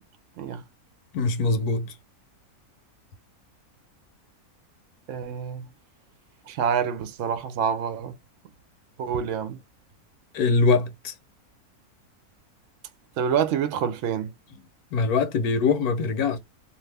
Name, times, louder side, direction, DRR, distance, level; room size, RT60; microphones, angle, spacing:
voice 1, 1.1-1.9 10.3-11.1 14.9-16.4, left 4 dB, 80° left, 1.2 m, -23 dB
voice 2, 5.1-5.7 6.5-8.2 9.0-9.6 13.2-14.3, right 7 dB, 65° right, 0.8 m, -27 dB
2.6 x 2.5 x 3.2 m
omnidirectional pair, 1.6 m